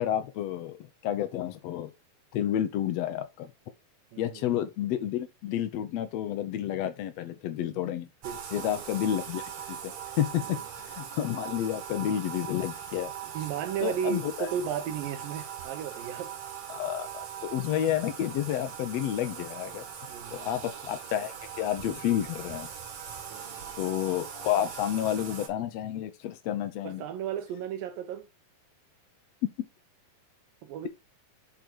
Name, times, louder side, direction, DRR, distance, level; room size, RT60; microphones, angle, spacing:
voice 1, 0.0-1.9 2.3-3.5 4.2-8.1 8.5-10.6 10.8-13.1 13.8-14.5 16.7-17.1 17.4-19.8 20.3-22.7 23.8-27.0, left 11 dB, 75° left, 1.6 m, -30 dB
voice 2, 4.1-4.6 7.7-7.9 8.2-8.8 10.4-10.6 13.3-16.3 20.1-20.5 23.3-23.8 26.8-28.3 30.6-30.9, right 9 dB, 80° right, 2.9 m, -35 dB
Bathtub (filling or washing), 8.2-25.5, right 8 dB, 60° right, 2.7 m, -41 dB
8.5 x 3.9 x 4.5 m
omnidirectional pair, 4.1 m